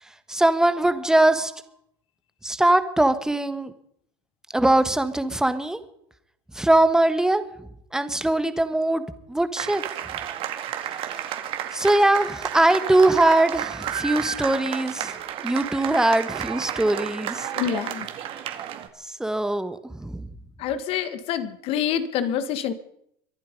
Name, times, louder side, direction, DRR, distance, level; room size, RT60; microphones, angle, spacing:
voice 1, 0.3-1.5 2.4-3.7 4.5-5.8 6.5-7.4 7.9-9.8 11.7-15.1 15.4-17.5 19.1-20.3, right 1 dB, 5° right, 11 dB, 1.5 m, -21 dB
sound 1, 9.6-18.9, right 10 dB, 50° right, 2.1 m, -31 dB
voice 2, 17.5-18.1 20.6-22.7, left 9 dB, 50° left, 12 dB, 1.7 m, -27 dB
24.5 x 11.0 x 5.3 m, 0.73 s
supercardioid pair, 105°, 12 cm